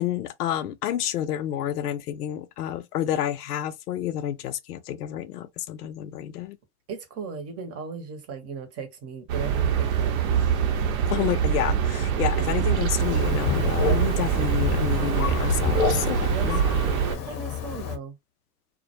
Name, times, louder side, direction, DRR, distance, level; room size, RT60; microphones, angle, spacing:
voice 1, 0.0-6.6 11.1-16.6, left 11 dB, 80° left, 0.5 m, -29 dB
voice 2, 6.9-10.6 16.3-18.2, right 5 dB, 30° right, 0.8 m, -37 dB
sound 1, 9.3-17.2, right 8 dB, 60° right, 0.7 m, -24 dB
Thunder, 13.0-18.0, left 7 dB, 30° left, 0.7 m, -29 dB
2.1 x 2.1 x 2.8 m
hypercardioid pair, 95°, 46 cm